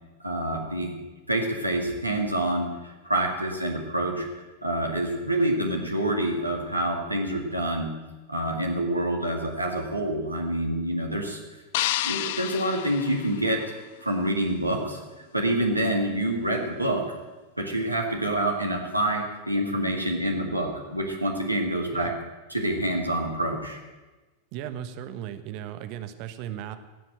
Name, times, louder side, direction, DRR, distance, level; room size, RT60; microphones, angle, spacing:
voice 1, 0.2-0.9 1.3-4.3 4.6-7.9 8.3-11.4 12.0-13.6 14.0-15.0 15.3-17.0 17.6-22.1 22.5-23.8, right 1 dB, 85° right, 1 dB, 2.0 m, -27 dB
sound 1, 11.7-14.0, left 15 dB, 50° left, 0.4 m, -30 dB
voice 2, 24.5-26.8, right 11 dB, 45° right, 9 dB, 1.2 m, -36 dB
17.0 x 7.6 x 8.9 m, 1.2 s
figure-of-eight pair, 90°, 0 cm